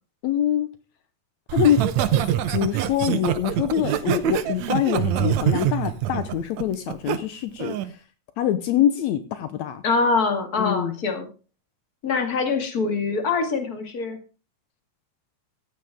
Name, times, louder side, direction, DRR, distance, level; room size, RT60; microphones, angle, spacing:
voice 1, 0.2-0.7 1.5-1.8 2.5-7.9 8.4-9.8 10.6-10.9, left 10 dB, 75° left, 10 dB, 2.1 m, -24 dB
Laughter, 1.5-7.2 7.6-7.9, right 11 dB, 75° right, 2.1 m, -24 dB
voice 2, 9.8-11.3 12.0-14.2, left 4 dB, 35° left, 5 dB, 2.4 m, -24 dB
14.5 x 10.0 x 3.5 m, 0.33 s
omnidirectional pair, 3.4 m